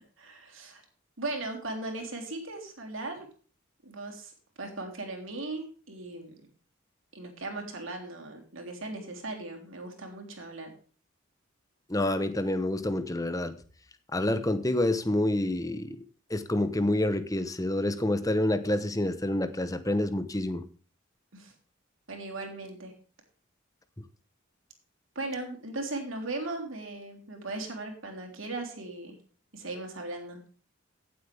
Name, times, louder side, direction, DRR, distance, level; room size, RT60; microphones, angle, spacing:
voice 1, 0.2-0.8 1.2-3.3 3.8-6.4 7.1-10.7 21.3-21.5 22.1-22.9 25.2-29.2 29.5-30.4, right 2 dB, 70° right, 2 dB, 3.5 m, -38 dB
voice 2, 11.9-13.5 14.1-16.0 16.3-20.6, left 1 dB, 15° left, 11 dB, 1.0 m, -28 dB
16.0 x 7.9 x 3.5 m, 0.41 s
head